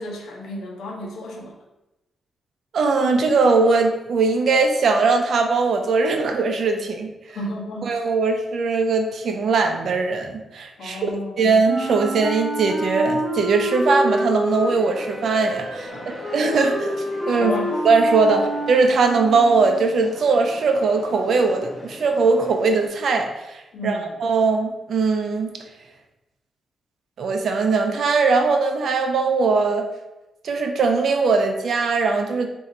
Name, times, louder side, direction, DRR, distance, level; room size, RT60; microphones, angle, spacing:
voice 1, 0.0-1.5 7.3-8.1 10.8-11.3 15.9-16.1 17.4-17.8 18.3-18.4 23.7-24.2, left 1 dB, 85° left, 0 dB, 0.9 m, -32 dB
voice 2, 2.7-7.1 7.8-15.9 16.3-17.5 17.8-25.5 27.2-29.8 30.4-32.5, right 4 dB, 60° right, 4 dB, 0.5 m, -20 dB
Wind instrument woodwind instrument, 11.6-19.9, equal, 15° right, 1.4 m, -28 dB
sound 1, 14.4-22.9, left 1 dB, 20° left, 1.2 m, -41 dB
3.8 x 2.7 x 4.1 m, 0.98 s
wide cardioid pair, 140°, 0 cm